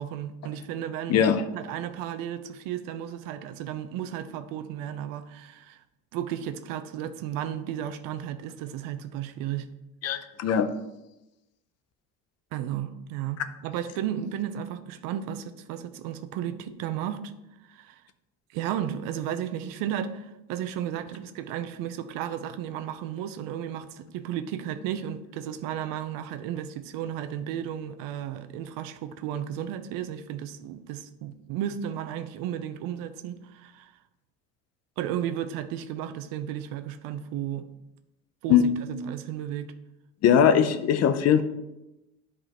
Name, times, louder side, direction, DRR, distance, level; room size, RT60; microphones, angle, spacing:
voice 1, 0.0-1.3 1.5-5.8 6.1-9.7 12.5-17.3 17.7-18.0 18.5-33.9 35.0-37.7 38.4-39.7, right 10 dB, 90° right, 0.7 m, -34 dB
voice 2, 1.1-1.4 10.0-10.7 38.5-38.7 40.2-41.4, left 8 dB, 50° left, 0.7 m, -20 dB
11.0 x 4.9 x 3.0 m
cardioid pair, 135°, 33 cm